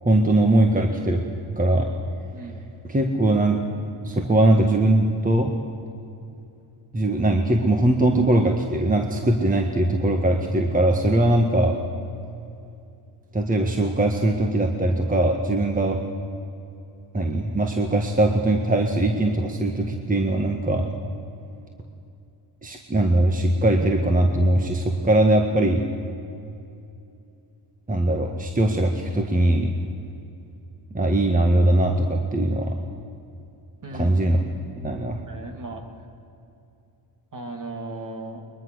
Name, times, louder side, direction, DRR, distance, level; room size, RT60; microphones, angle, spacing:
voice 1, 0.0-1.2 1.5-1.9 2.9-3.6 4.0-5.6 6.9-11.7 13.3-16.0 17.1-20.8 22.6-25.8 27.9-29.7 30.9-32.7 33.9-34.4 34.8-35.2, right 1 dB, 15° right, 3 dB, 1.6 m, -21 dB
voice 2, 2.3-2.6 33.8-34.1 35.3-35.8 37.3-38.4, right 2 dB, 40° right, 4 dB, 3.0 m, -36 dB
22.0 x 21.5 x 6.4 m, 2.6 s
cardioid pair, 100°, 46 cm